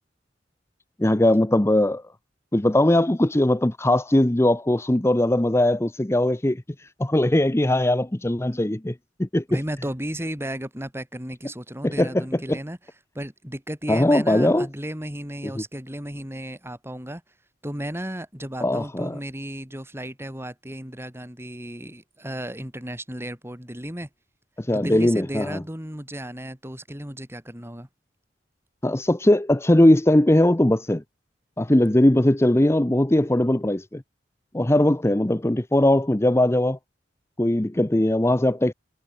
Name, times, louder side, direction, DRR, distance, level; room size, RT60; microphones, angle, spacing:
voice 1, 1.0-2.0 2.5-8.9 9.2-9.6 11.8-12.6 13.9-14.7 15.6-15.7 18.6-19.2 24.6-25.6 28.8-31.0 31.6-34.0 34.5-36.8 37.4-38.7, left 1 dB, 15° left, 0.7 m, -20 dB
voice 2, 9.5-12.8 13.2-17.2 17.6-24.1 24.7-27.9, right 1 dB, 15° right, 6.8 m, -34 dB
head